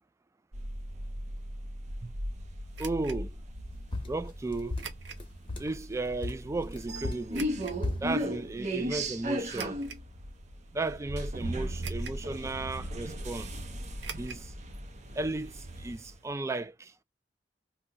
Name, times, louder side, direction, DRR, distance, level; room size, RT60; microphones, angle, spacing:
sound 1, 0.5-16.2, right 1 dB, 40° right, 0.7 m, -37 dB
sound 2, 2.7-3.2 4.8-5.3 5.8-5.9 7.3-7.8 9.5-10.1 10.7-10.8 11.8-12.3 12.6-12.7 14.0-14.5 14.7-14.8 15.1-15.2, right 6 dB, 75° right, 0.6 m, -43 dB
voice 1, 2.8-3.4 4.1-4.8 5.6-7.5 8.0-9.8 10.7-13.5 14.2-14.5 15.1-16.9, right 2 dB, 15° right, 0.3 m, -35 dB
sound 3, 3.9-5.8 6.2-8.1, left 2 dB, 30° left, 0.9 m, -36 dB
2.8 x 2.1 x 3.7 m
head